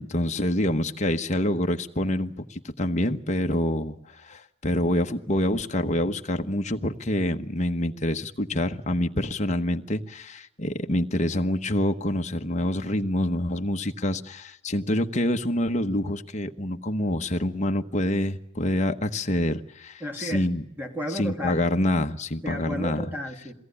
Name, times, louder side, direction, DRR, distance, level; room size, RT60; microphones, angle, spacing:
voice 1, 0.0-20.6 21.1-23.0, left 1 dB, 35° left, 5 dB, 1.1 m, -26 dB
voice 2, 20.0-20.5 20.8-21.6 22.4-23.5, equal, 10° right, 2 dB, 2.8 m, -33 dB
22.5 x 17.5 x 9.9 m, 0.81 s
head